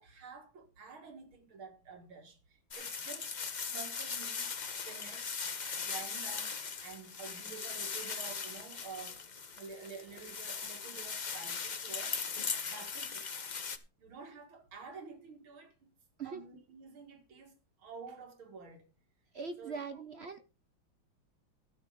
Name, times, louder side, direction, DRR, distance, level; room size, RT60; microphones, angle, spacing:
voice 1, 0.0-3.4 3.7-5.4 5.7-9.2 9.5-12.2 12.6-13.3 14.0-15.9 16.2-17.5 17.8-18.9 19.6-20.0, right 5 dB, 85° right, 3.1 m, -50 dB
sound 1, 2.7-13.8, left 5 dB, 75° left, 0.4 m, -39 dB
voice 2, 19.3-20.4, right 5 dB, 60° right, 0.6 m, -41 dB
13.5 x 7.0 x 5.1 m
omnidirectional pair, 2.2 m